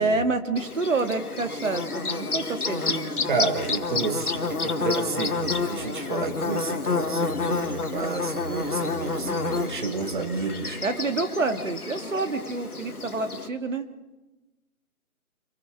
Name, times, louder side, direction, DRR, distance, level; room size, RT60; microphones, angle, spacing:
voice 1, 0.0-3.3 9.2-9.5 10.8-13.9, right 3 dB, 60° right, 7 dB, 2.4 m, -28 dB
Bird / Buzz, 0.6-13.5, left 4 dB, 80° left, 2.1 m, -29 dB
voice 2, 3.3-10.8, right 4 dB, 35° right, 7 dB, 1.8 m, -30 dB
26.5 x 20.0 x 4.9 m, 1.1 s
figure-of-eight pair, 160°, 44 cm